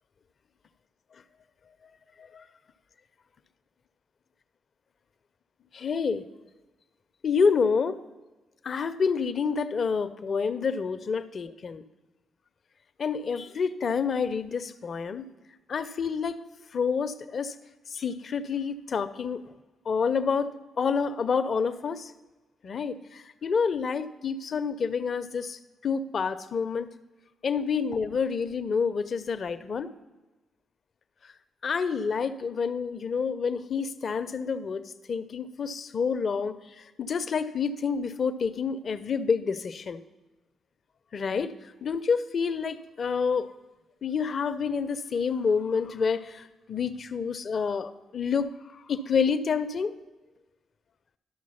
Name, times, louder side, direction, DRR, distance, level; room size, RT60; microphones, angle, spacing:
voice 1, 5.7-6.2 7.2-8.0 8.6-11.8 13.0-15.3 15.7-16.4 16.7-17.6 17.9-19.5 19.9-22.1 22.6-26.9 27.4-29.9 31.6-40.0 41.1-43.5 44.0-50.0, left 5 dB, 50° left, 12 dB, 0.6 m, -28 dB
12.0 x 6.2 x 5.7 m, 1.2 s
hypercardioid pair, 45°, 0 cm